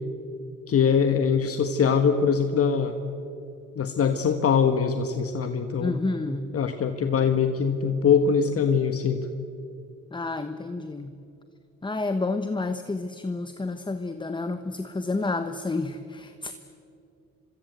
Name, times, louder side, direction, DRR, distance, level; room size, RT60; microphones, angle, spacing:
voice 1, 0.7-3.0 3.7-6.0 6.5-9.2, left 6 dB, 50° left, 7 dB, 1.5 m, -22 dB
voice 2, 5.8-6.5 10.1-11.1 11.8-16.5, left 3 dB, 15° left, 9 dB, 1.2 m, -30 dB
25.5 x 23.5 x 8.1 m, 2.7 s
cardioid pair, 90°, 30 cm